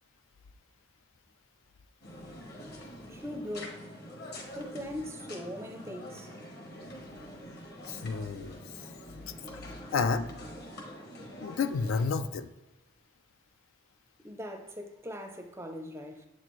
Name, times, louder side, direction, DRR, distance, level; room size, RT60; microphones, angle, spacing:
sound 1, 2.0-12.1, equal, 50° left, 1.1 m, -45 dB
voice 1, 3.1-3.8 4.6-6.3 14.2-16.3, left 1 dB, 10° right, 0.5 m, -40 dB
voice 2, 7.9-8.6 9.9-10.3 11.4-12.5, left 5 dB, 65° left, 0.3 m, -30 dB
7.3 x 4.2 x 3.0 m
head